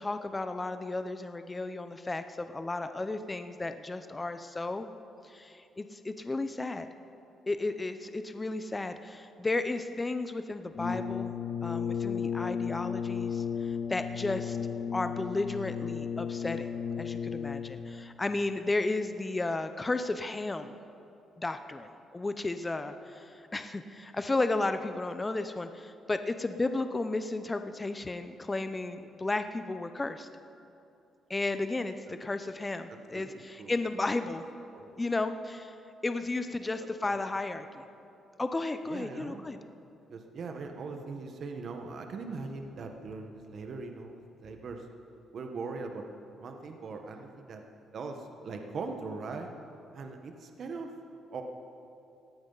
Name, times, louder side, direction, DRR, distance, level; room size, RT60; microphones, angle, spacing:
voice 1, 0.0-4.9 5.2-6.9 7.5-14.6 14.9-20.7 21.4-30.3 31.3-34.4 35.0-35.8 36.0-37.8 38.4-39.6, left 2 dB, 20° left, 9 dB, 0.6 m, -33 dB
Brass instrument, 10.7-17.9, left 7 dB, 60° left, 2.8 m, -34 dB
voice 2, 33.1-33.7 34.7-35.0 36.6-36.7 37.0-37.2 38.9-39.5 40.1-44.8 45.3-46.1 46.4-47.6 47.9-49.5 49.9-50.9 51.3-51.4, right 4 dB, 55° right, 4 dB, 1.2 m, -40 dB
18.5 x 13.5 x 4.0 m, 2.7 s
cardioid pair, 90°, 0 cm